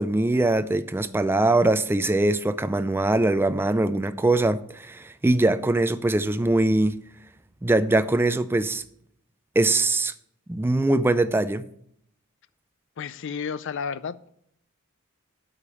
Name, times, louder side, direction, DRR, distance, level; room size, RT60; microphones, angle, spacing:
voice 1, 0.0-6.9 7.6-8.8 9.6-10.1 10.5-11.7, right 2 dB, 10° right, 0.3 m, -22 dB
voice 2, 13.0-14.3, left 6 dB, 60° left, 0.4 m, -32 dB
8.5 x 5.0 x 7.1 m
head